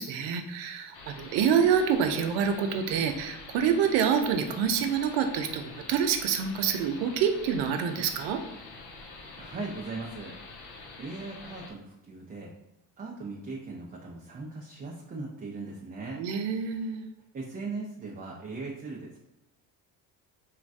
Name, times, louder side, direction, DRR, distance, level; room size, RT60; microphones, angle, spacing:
voice 1, 0.0-8.4 16.2-17.1, right 7 dB, 70° right, 6 dB, 0.6 m, -27 dB
sound 1, 0.9-11.7, left 3 dB, 55° left, 0.8 m, -46 dB
voice 2, 9.4-10.3 11.0-12.5 13.0-16.2 17.3-19.2, right 3 dB, 20° right, -2 dB, 0.5 m, -39 dB
3.1 x 2.4 x 2.5 m, 0.93 s
hypercardioid pair, 60°, 46 cm